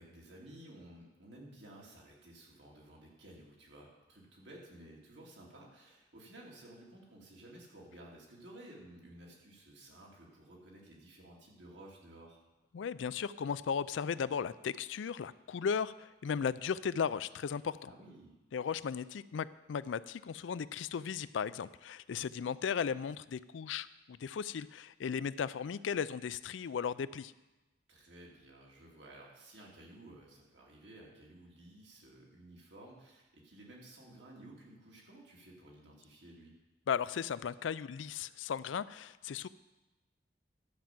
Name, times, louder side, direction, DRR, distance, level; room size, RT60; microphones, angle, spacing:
voice 1, 0.0-12.4 17.8-18.4 27.9-36.5, right 1 dB, 75° right, -3 dB, 2.7 m, -54 dB
voice 2, 12.7-17.9 18.5-27.3 36.9-39.5, left 7 dB, 90° left, 17 dB, 0.4 m, -36 dB
11.5 x 5.7 x 7.5 m, 1.1 s
head